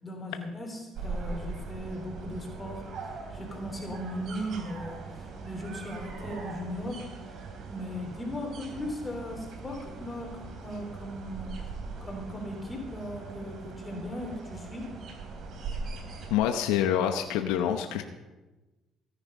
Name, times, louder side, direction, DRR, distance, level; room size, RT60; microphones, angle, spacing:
voice 1, 0.0-11.6 12.0-15.0, equal, 20° left, 1 dB, 3.4 m, -38 dB
sound 1, 0.9-16.4, right 4 dB, 65° right, 3.0 m, -41 dB
voice 2, 16.3-18.0, left 10 dB, 90° left, 6 dB, 0.9 m, -26 dB
17.0 x 9.8 x 5.5 m, 1.1 s
supercardioid pair, 85°, 0 cm